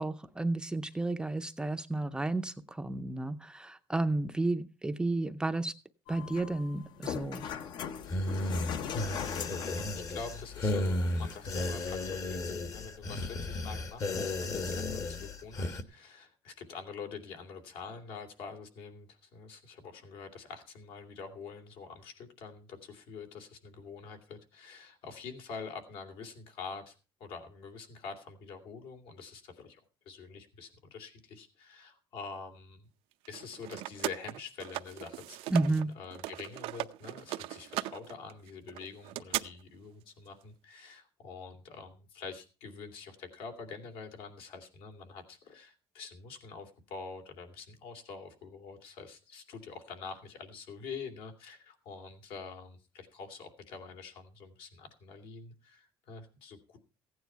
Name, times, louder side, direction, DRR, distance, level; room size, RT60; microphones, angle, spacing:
voice 1, 0.0-5.7 6.1-7.4 35.5-35.9, right 2 dB, 10° right, 8 dB, 0.5 m, -32 dB
sound 1, 6.1-12.1, left 8 dB, 50° left, 0.8 m, -41 dB
sound 2, 8.0-15.8, left 2 dB, 35° left, 1.1 m, -34 dB
voice 2, 9.6-26.9 27.2-29.8 30.0-32.9 33.3-56.8, left 5 dB, 70° left, 5 dB, 2.8 m, -46 dB
sound 3, 33.2-35.8 36.1-39.4, right 16 dB, 90° right, 0.6 m, -38 dB
15.5 x 9.4 x 4.5 m, 0.33 s
cardioid pair, 160°, 9 cm